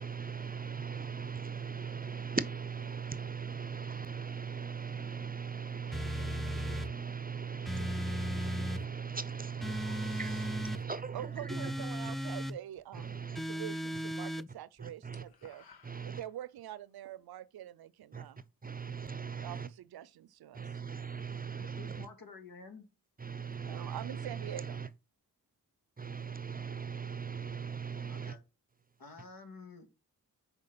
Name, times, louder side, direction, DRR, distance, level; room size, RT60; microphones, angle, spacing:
voice 1, 0.0-11.7 12.0-12.1 12.9-13.4 14.8-15.3 15.8-16.2 18.1-19.7 20.5-22.1 23.2-24.9 26.0-28.4, right 6 dB, 25° right, 0.7 m, -39 dB
sound 1, 5.9-6.9 7.7-8.8 9.6-10.8 11.5-12.6 13.4-14.5, equal, ahead, 0.3 m, -36 dB
voice 2, 11.1-13.2 13.5-15.6 16.0-18.4 19.4-20.7 23.7-24.9, right 12 dB, 85° right, 0.5 m, -45 dB
sound 2, 12.7-13.7 14.0-14.4 14.6-16.7, left 6 dB, 85° left, 1.4 m, -60 dB
voice 3, 21.6-22.9 28.1-28.4 29.0-29.9, left 4 dB, 70° left, 2.2 m, -51 dB
6.5 x 4.7 x 5.6 m
cardioid pair, 55°, 36 cm